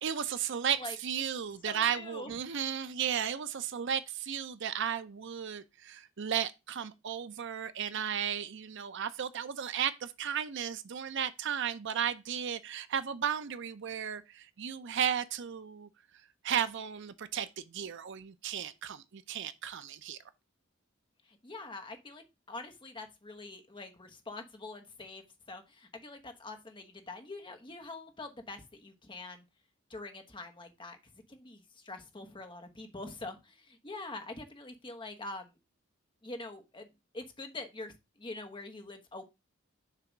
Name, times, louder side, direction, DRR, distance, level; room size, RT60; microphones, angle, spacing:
voice 1, 0.0-15.9 16.4-20.2, right 8 dB, 60° right, 0.5 m, -34 dB
voice 2, 1.6-2.4 21.2-29.4 29.9-31.0 31.3-35.6 36.2-36.9 37.1-39.2, left 2 dB, 25° left, 1.2 m, -45 dB
6.7 x 3.4 x 6.0 m
head